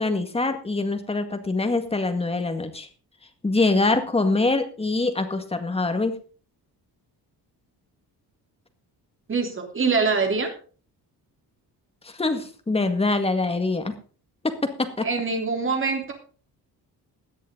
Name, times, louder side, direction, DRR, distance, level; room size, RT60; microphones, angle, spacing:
voice 1, 0.0-2.9 3.4-6.2 12.0-14.0 14.4-15.1, left 3 dB, 15° left, 7 dB, 1.9 m, -24 dB
voice 2, 9.3-10.5 15.0-16.1, right 4 dB, 30° right, 4 dB, 3.3 m, -24 dB
17.0 x 10.0 x 3.8 m, 0.39 s
cardioid pair, 150°, 40 cm